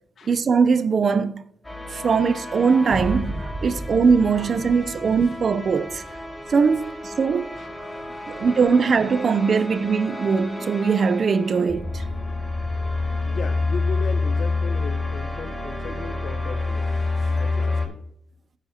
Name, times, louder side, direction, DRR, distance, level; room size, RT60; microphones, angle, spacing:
voice 1, 0.2-1.4 1.9-6.0 6.5-7.6 8.3-12.0, right 5 dB, 55° right, 0.7 m, -21 dB
sound 1, 1.6-17.9, left 3 dB, 15° left, 4.8 m, -29 dB
sound 2, 2.9-10.3, right 1 dB, 40° left, 3.7 m, -36 dB
voice 2, 13.1-18.0, left 6 dB, 60° left, 1.1 m, -38 dB
15.0 x 8.9 x 2.9 m
cardioid pair, 75°, 0 cm